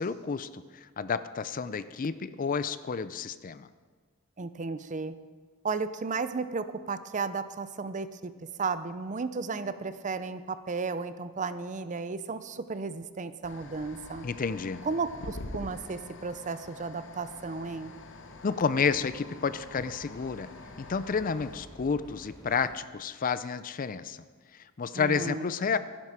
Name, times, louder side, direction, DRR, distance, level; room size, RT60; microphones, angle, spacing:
voice 1, 0.0-3.7 14.2-14.8 18.4-20.5 20.8-24.2 24.5-25.8, left 5 dB, 40° left, 14 dB, 0.4 m, -30 dB
voice 2, 4.4-5.1 5.6-8.3 8.6-14.3 14.8-17.9 24.9-25.5, right 4 dB, 35° right, 12 dB, 0.5 m, -34 dB
sound 1, 13.4-21.6, left 2 dB, 55° left, 0.9 m, -46 dB
sound 2, 16.4-22.8, left 1 dB, 20° left, 1.6 m, -53 dB
15.5 x 10.5 x 4.9 m, 1.5 s
head